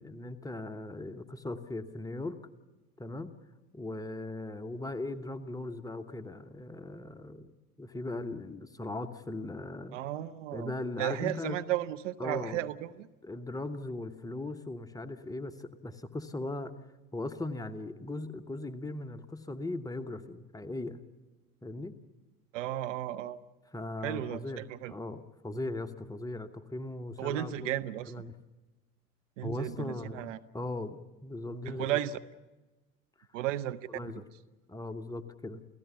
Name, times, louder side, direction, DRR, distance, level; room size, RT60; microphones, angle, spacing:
voice 1, 0.0-2.4 3.0-3.3 3.7-10.0 10.5-11.6 12.2-12.6 13.2-16.7 17.1-21.0 21.6-21.9 23.7-27.8 28.1-28.3 29.4-32.0 33.9-34.2 34.7-35.6, left 2 dB, 10° left, 8 dB, 1.0 m, -39 dB
voice 2, 9.9-13.1 22.5-23.4 24.0-24.9 27.2-28.1 29.4-30.4 31.6-32.2 33.3-33.9, right 13 dB, 55° right, 12 dB, 0.9 m, -34 dB
29.0 x 16.0 x 7.0 m, 1.1 s
figure-of-eight pair, 75°, 45 cm